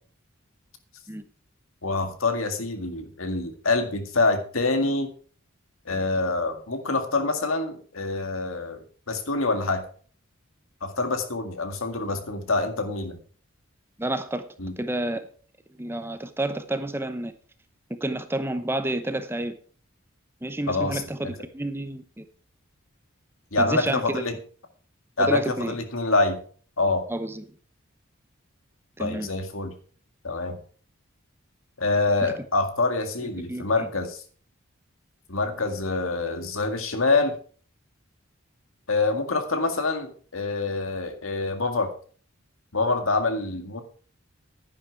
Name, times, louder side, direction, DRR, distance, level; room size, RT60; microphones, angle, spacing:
voice 1, 1.8-5.1 5.9-9.8 10.8-13.2 14.6-14.7 20.7-21.0 23.5-24.4 25.2-26.4 26.8-27.0 29.0-29.7 30.2-30.6 31.8-34.2 35.3-37.4 38.9-41.9 42.7-43.8, left 3 dB, 80° left, 2.0 m, -26 dB
voice 2, 14.0-14.5 14.8-15.3 15.8-17.3 18.0-19.5 20.4-22.2 23.6-24.2 25.2-25.7 27.1-27.4 29.0-29.3 33.5-33.7, right 1 dB, 10° right, 0.8 m, -29 dB
10.5 x 10.0 x 4.7 m
head